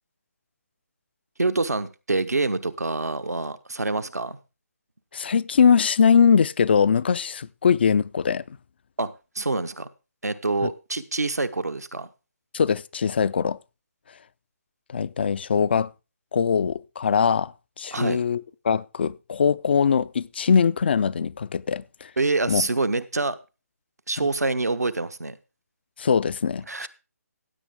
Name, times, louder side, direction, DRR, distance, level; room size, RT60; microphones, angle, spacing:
voice 1, 1.4-4.4 9.0-9.9 10.2-12.1 17.9-18.2 22.2-23.4 24.1-25.4 26.7-26.9, right 3 dB, 75° right, 1.1 m, -26 dB
voice 2, 5.1-8.4 12.5-13.6 14.9-15.9 16.3-17.5 17.8-22.1 22.5-22.6 26.0-26.9, left 6 dB, 40° left, 0.5 m, -21 dB
15.5 x 8.6 x 3.6 m
figure-of-eight pair, 145°, 9 cm